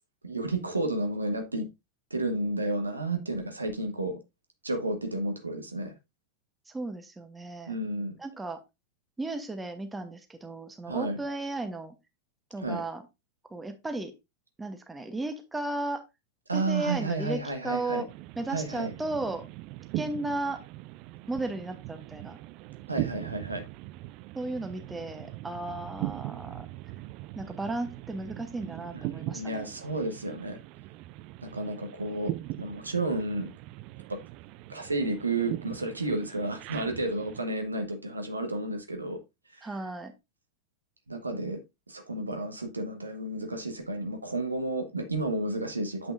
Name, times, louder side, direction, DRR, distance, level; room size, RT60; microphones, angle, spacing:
voice 1, 0.2-1.7 2.1-4.2 4.6-5.9 7.7-8.2 10.9-11.2 12.6-12.8 16.5-18.0 18.5-18.9 22.9-23.6 28.9-30.6 31.4-33.5 34.1-34.2 34.7-39.2 39.5-39.7 41.1-41.6 41.9-46.1, right 2 dB, 80° right, 1.3 m, -31 dB
voice 2, 6.7-7.8 8.2-8.6 9.2-11.9 12.5-13.0 13.5-14.1 14.6-16.0 16.5-18.1 18.4-19.4 20.0-20.6 21.3-22.4 24.3-26.7 27.3-29.7 39.6-40.1, right 2 dB, 10° right, 1.0 m, -35 dB
sound 1, 18.1-37.4, right 17 dB, 40° right, 0.3 m, -40 dB
8.1 x 6.0 x 2.6 m
figure-of-eight pair, 90°, 0 cm